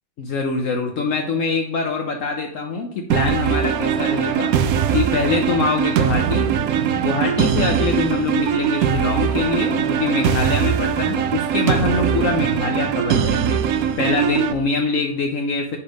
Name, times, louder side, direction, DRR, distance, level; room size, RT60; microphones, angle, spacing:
voice 1, 0.2-4.5 4.9-6.5 7.0-15.8, left 4 dB, 65° left, 3 dB, 1.1 m, -24 dB
sound 1, 3.1-14.5, right 8 dB, 80° right, 1.1 m, -21 dB
6.9 x 4.3 x 5.1 m, 0.67 s
omnidirectional pair, 1.5 m